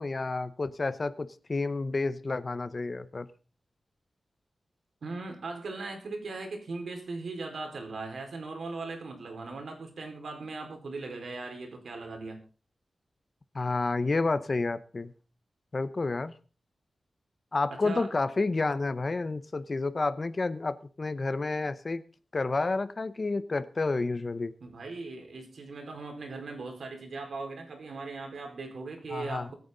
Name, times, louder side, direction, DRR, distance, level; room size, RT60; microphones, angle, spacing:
voice 1, 0.0-3.3 13.5-15.1 15.7-16.3 17.5-22.0 22.3-24.5 29.1-29.5, left 3 dB, 35° left, 14 dB, 0.8 m, -30 dB
voice 2, 5.0-12.4 17.7-18.1 24.6-29.5, right 3 dB, 80° right, 3 dB, 4.6 m, -39 dB
24.0 x 9.4 x 3.9 m, 0.36 s
wide cardioid pair, 155°, 0 cm